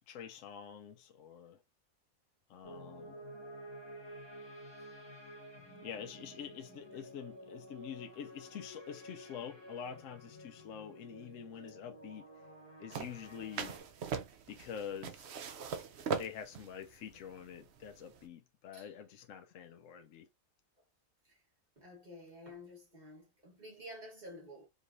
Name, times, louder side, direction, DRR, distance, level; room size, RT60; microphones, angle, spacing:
voice 1, 0.1-1.6 2.5-3.1 5.8-12.3 12.8-13.8 14.5-15.3 16.1-20.3, left 8 dB, 70° left, 0.9 m, -46 dB
sound 1, 2.6-13.8, equal, 20° left, 1.7 m, -52 dB
sound 2, 12.9-18.2, right 6 dB, 60° right, 0.8 m, -41 dB
voice 2, 21.8-24.7, left 1 dB, 35° right, 1.4 m, -51 dB
5.3 x 2.9 x 2.5 m
omnidirectional pair, 1.5 m